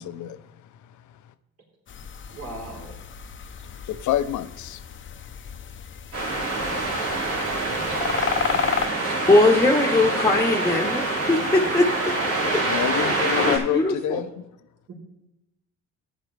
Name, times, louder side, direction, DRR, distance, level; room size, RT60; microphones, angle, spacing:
voice 1, 0.0-1.3 3.6-4.8 12.6-14.4, left 11 dB, 75° left, 0.7 m, -28 dB
sound 1, 1.9-8.9, left 7 dB, 40° left, 0.7 m, -32 dB
voice 2, 2.3-3.0 7.6-8.0 8.5-8.6 9.1-9.2 14.9-15.0, right 2 dB, 55° right, 4.0 m, -39 dB
sound 2, 6.1-13.6, right 2 dB, 85° right, 4.8 m, -26 dB
voice 3, 9.3-11.9 12.4-12.6 12.9-14.2, left 2 dB, 10° left, 1.2 m, -21 dB
14.0 x 9.8 x 3.3 m
cardioid pair, 90°, 30 cm